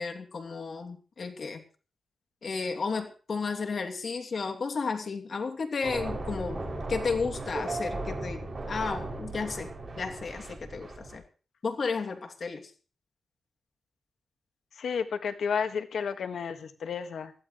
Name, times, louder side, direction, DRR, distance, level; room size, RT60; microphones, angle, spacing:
voice 1, 0.0-1.6 2.4-9.7 10.0-11.2 11.6-12.7, left 4 dB, 55° left, 5 dB, 2.8 m, -33 dB
sound 1, 5.8-11.2, right 2 dB, 30° right, 6.8 m, -36 dB
voice 2, 14.8-17.3, left 6 dB, 80° left, 8 dB, 1.8 m, -32 dB
21.0 x 15.5 x 3.3 m, 0.39 s
cardioid pair, 95°, 0 cm